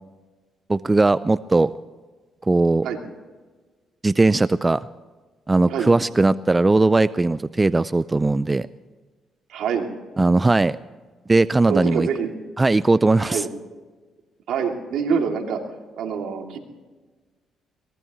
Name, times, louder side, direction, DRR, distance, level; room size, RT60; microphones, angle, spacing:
voice 1, 0.7-1.7 2.5-2.9 4.0-4.9 5.5-8.7 10.2-10.8 11.3-12.1 12.6-13.4, right 2 dB, 20° right, 15 dB, 0.4 m, -18 dB
voice 2, 9.5-9.9 11.7-12.3 13.2-13.5 14.5-15.6 16.0-16.6, right 6 dB, 80° right, 2 dB, 2.6 m, -25 dB
23.0 x 19.0 x 3.1 m, 1.3 s
cardioid pair, 90°, 0 cm